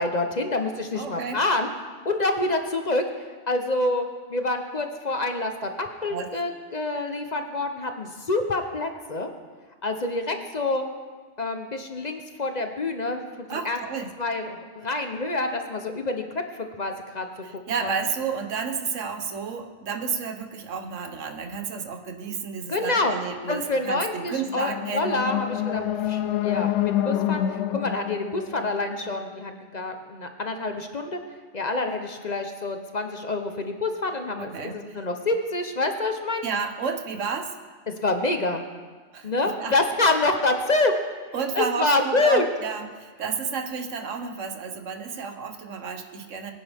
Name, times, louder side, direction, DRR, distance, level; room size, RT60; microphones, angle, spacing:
voice 1, 0.0-1.7 2.0-9.3 9.8-10.8 11.4-17.3 17.5-17.9 22.7-23.2 23.5-31.2 31.5-36.4 37.9-38.6 39.2-40.9 41.5-42.4, left 2 dB, 40° left, 5 dB, 0.9 m, -27 dB
voice 2, 0.9-1.4 6.1-6.3 13.5-14.1 17.4-25.2 34.4-35.0 36.4-37.5 39.1-39.7 41.3-46.5, right 6 dB, 85° right, 6 dB, 1.4 m, -31 dB
sound 1, 24.5-29.6, left 12 dB, 75° left, 0.9 m, -28 dB
21.5 x 10.0 x 3.5 m, 1.5 s
omnidirectional pair, 1.2 m